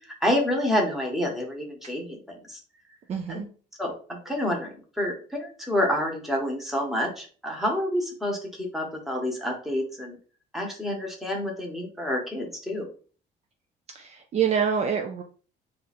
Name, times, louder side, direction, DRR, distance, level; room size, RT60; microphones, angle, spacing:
voice 1, 0.2-2.6 3.3-3.4 3.8-3.9 4.2-10.2 10.5-12.9, left 1 dB, ahead, 0 dB, 1.1 m, -28 dB
voice 2, 3.1-3.5 13.9-15.2, right 7 dB, 40° right, 4 dB, 0.4 m, -26 dB
2.6 x 2.5 x 4.2 m, 0.40 s
cardioid pair, 110°, 17 cm